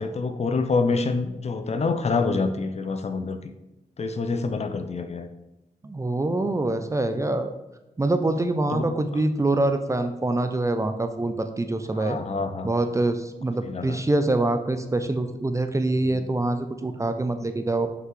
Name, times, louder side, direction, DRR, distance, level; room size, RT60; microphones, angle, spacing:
voice 1, 0.0-3.5 4.0-5.3 8.7-8.9 11.9-12.7 13.6-14.0 16.1-16.2, left 4 dB, 45° left, 9 dB, 0.5 m, -27 dB
voice 2, 5.8-7.5 8.0-12.2 12.6-17.9, right 2 dB, 20° right, 8 dB, 0.4 m, -25 dB
5.8 x 5.6 x 3.1 m, 0.94 s
wide cardioid pair, 100°, 16 cm